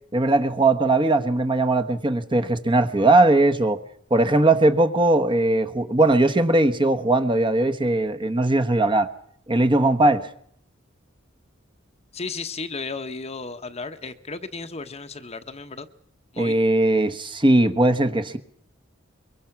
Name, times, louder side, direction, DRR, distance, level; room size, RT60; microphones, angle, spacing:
voice 1, 0.1-3.8 4.1-9.1 9.5-10.3 16.4-18.4, right 2 dB, 25° right, 1.2 m, -19 dB
voice 2, 12.1-15.9 16.3-16.6, left 4 dB, 30° left, 1.0 m, -34 dB
23.5 x 23.0 x 5.9 m
head